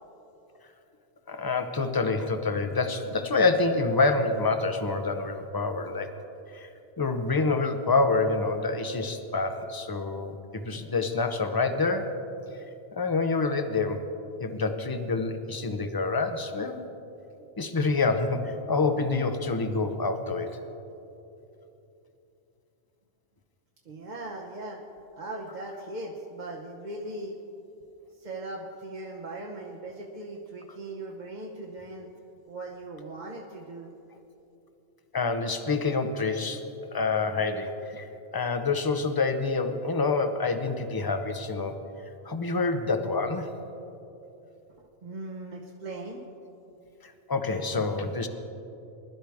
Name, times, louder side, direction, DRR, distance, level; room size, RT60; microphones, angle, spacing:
voice 1, 1.3-6.1 6.5-6.7 7.0-12.1 12.9-14.0 14.4-16.9 17.6-20.6 35.1-36.6 36.9-41.8 42.2-43.5 47.0-48.3, left 3 dB, 25° left, 8 dB, 0.6 m, -27 dB
voice 2, 23.8-24.8 25.1-27.4 28.2-32.1 32.5-33.9 45.0-46.2, right 2 dB, 40° right, -1 dB, 1.0 m, -39 dB
21.0 x 12.0 x 3.5 m, 2.9 s
omnidirectional pair, 1.2 m